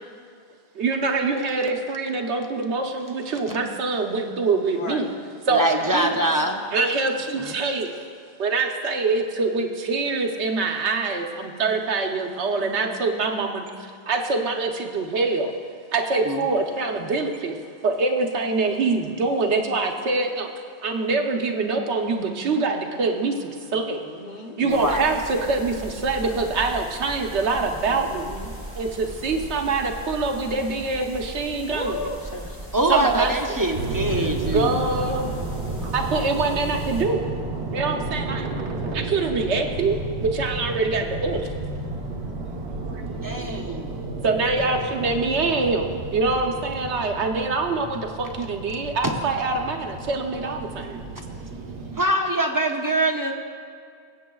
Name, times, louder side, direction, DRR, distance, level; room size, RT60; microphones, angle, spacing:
voice 1, 0.7-5.1 5.5-6.1 6.7-8.0 8.4-13.6 14.1-15.5 15.9-17.6 17.8-20.5 20.8-24.0 24.6-28.3 28.8-32.1 32.9-33.3 34.4-35.3 35.9-37.3 37.7-41.5 42.9-43.0 44.2-51.0, right 3 dB, 85° right, 3 dB, 1.1 m, -24 dB
voice 2, 4.7-5.1 23.7-24.6 27.9-28.5 31.6-32.7 38.4-38.5, left 1 dB, 55° left, 2 dB, 1.0 m, -35 dB
voice 3, 5.5-6.7 7.4-7.6 16.3-16.5 24.6-25.1 32.7-34.8 43.2-44.0 49.0-49.1 52.0-53.3, right 1 dB, 25° right, 2 dB, 0.4 m, -24 dB
sound 1, 24.7-37.0, right 1 dB, 5° right, 2.9 m, -38 dB
sound 2, 33.7-52.0, right 2 dB, 70° right, 1.4 m, -32 dB
22.0 x 8.2 x 2.3 m, 2.2 s
omnidirectional pair, 1.1 m